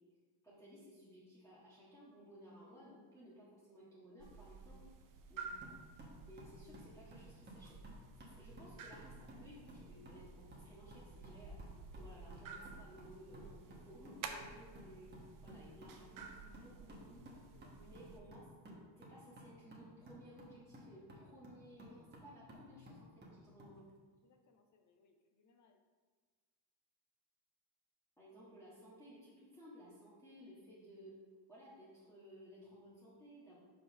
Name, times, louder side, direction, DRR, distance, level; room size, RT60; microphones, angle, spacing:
voice 1, 0.4-4.8 5.3-5.4 6.3-7.8 8.3-11.6 11.9-15.1 15.4-17.2 17.8-23.9 28.2-31.1 31.5-33.6, equal, 5° left, -10 dB, 1.6 m, -58 dB
sound 1, 4.2-18.2, right 5 dB, 45° right, 0.6 m, -53 dB
sound 2, 5.6-23.8, equal, 20° right, 1.2 m, -57 dB
voice 2, 17.5-18.0 24.2-25.8, left 4 dB, 40° left, 5 dB, 0.7 m, -70 dB
5.1 x 3.7 x 5.7 m, 1.5 s
cardioid pair, 130°, 48 cm